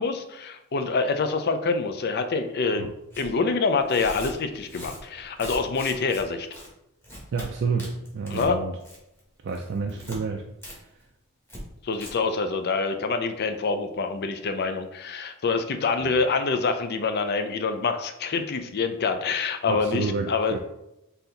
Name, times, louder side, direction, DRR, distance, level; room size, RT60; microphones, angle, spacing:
voice 1, 0.0-2.9 3.2-6.5 8.3-8.6 11.8-20.5, left 4 dB, 45° left, 7 dB, 0.4 m, -26 dB
Tearing, 3.1-3.3 3.8-6.2 6.5-6.7 7.0-7.5 7.8-8.5 8.8-9.2 9.5-10.2 10.6-10.8 11.0-11.1 11.5-11.6 11.9-12.1, equal, 10° left, 1.2 m, -40 dB
voice 2, 7.3-8.7 9.4-10.4 16.0-16.2 19.7-20.6, right 4 dB, 50° right, 2 dB, 0.4 m, -29 dB
4.0 x 2.8 x 3.9 m, 0.88 s
head